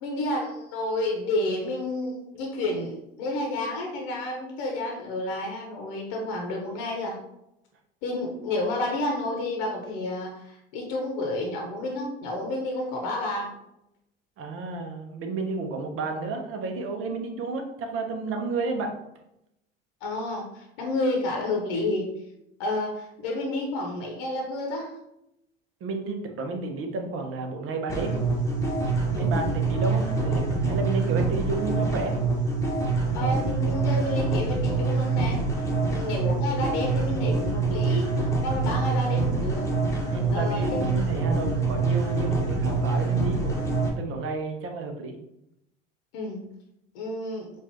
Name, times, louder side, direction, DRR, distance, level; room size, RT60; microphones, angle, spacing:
voice 1, 0.0-7.2 8.0-13.5 20.0-22.1 22.6-24.9 29.1-29.3 33.1-35.4 35.9-39.7 40.3-40.9 46.1-46.4 46.9-47.5, left 2 dB, 65° left, 1 dB, 0.9 m, -30 dB
voice 2, 14.4-18.9 25.8-28.1 29.1-32.2 40.1-45.2, right 3 dB, 45° right, 4 dB, 0.8 m, -31 dB
sound 1, 27.9-43.9, right 3 dB, 10° left, 1.0 m, -25 dB
4.5 x 2.5 x 2.9 m, 0.83 s
hypercardioid pair, 65°, 30 cm